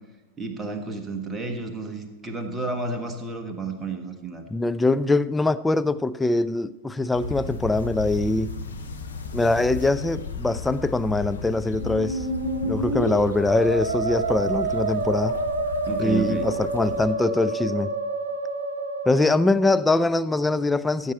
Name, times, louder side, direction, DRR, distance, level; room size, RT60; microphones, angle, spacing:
voice 1, 0.4-4.5 15.9-16.5, right 3 dB, 15° right, 1.4 m, -31 dB
voice 2, 4.5-8.5 9.3-12.3 12.6-15.4 16.0-17.9 19.1-21.1, left 2 dB, 10° left, 0.4 m, -23 dB
sound 1, 7.1-17.1, left 4 dB, 70° left, 1.3 m, -35 dB
Musical instrument, 11.7-19.7, right 2 dB, 65° right, 0.9 m, -28 dB
14.5 x 7.9 x 4.3 m
figure-of-eight pair, 90°, 0 cm